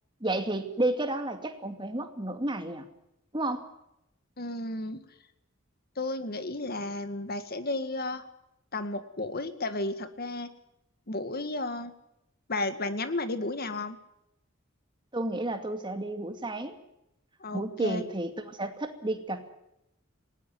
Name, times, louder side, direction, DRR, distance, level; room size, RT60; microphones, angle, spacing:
voice 1, 0.2-2.9 3.3-3.7 15.1-16.8 17.5-19.5, right 2 dB, 25° right, 7 dB, 2.4 m, -31 dB
voice 2, 4.4-5.0 6.0-8.3 8.7-10.5 11.1-11.9 12.5-14.0 17.4-18.0, left 2 dB, 50° left, 10 dB, 1.9 m, -33 dB
19.0 x 19.0 x 9.4 m, 0.85 s
head